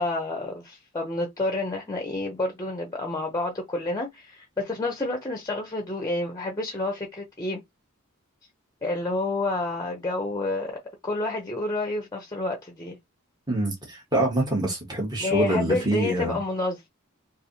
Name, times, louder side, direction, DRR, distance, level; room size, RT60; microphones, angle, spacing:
voice 1, 0.0-7.6 8.8-13.0 15.2-16.9, left 2 dB, 15° left, 0.8 m, -29 dB
voice 2, 13.5-16.4, right 1 dB, 20° right, 1.3 m, -25 dB
3.3 x 2.7 x 4.0 m
head